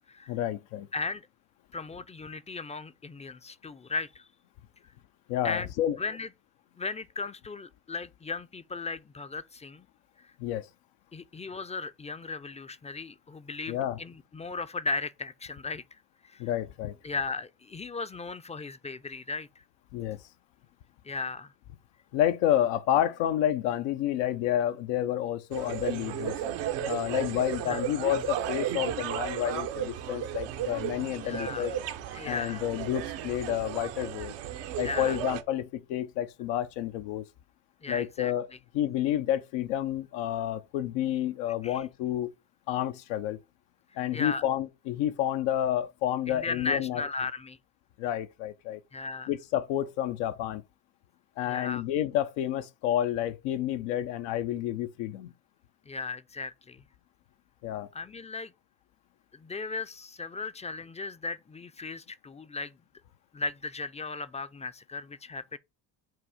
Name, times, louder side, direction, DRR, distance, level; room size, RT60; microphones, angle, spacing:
voice 1, 0.3-0.9 5.3-6.0 10.4-10.7 13.7-14.0 16.4-16.9 19.9-20.2 22.1-26.3 26.8-31.7 32.2-34.3 34.8-37.2 37.9-38.5 38.7-42.3 42.7-43.4 44.0-47.0 48.0-48.8 49.3-50.6 51.4-55.3 57.6-57.9, left 11 dB, 90° left, 0.6 m, -29 dB
voice 2, 0.9-1.2 1.7-4.3 5.4-5.7 6.0-6.3 6.8-9.9 11.1-15.8 16.2-16.4 17.0-19.5 21.0-21.5 27.7-27.8 31.2-31.7 32.1-32.6 34.8-35.2 37.8-38.3 41.6-41.9 44.1-44.4 46.3-47.6 48.9-49.3 51.5-51.8 55.9-56.8 57.9-58.5 59.3-62.7 63.3-65.6, left 4 dB, 15° left, 0.3 m, -36 dB
sound 1, 25.5-35.4, right 10 dB, 85° right, 0.8 m, -34 dB
7.6 x 2.6 x 4.8 m
supercardioid pair, 80°, 43 cm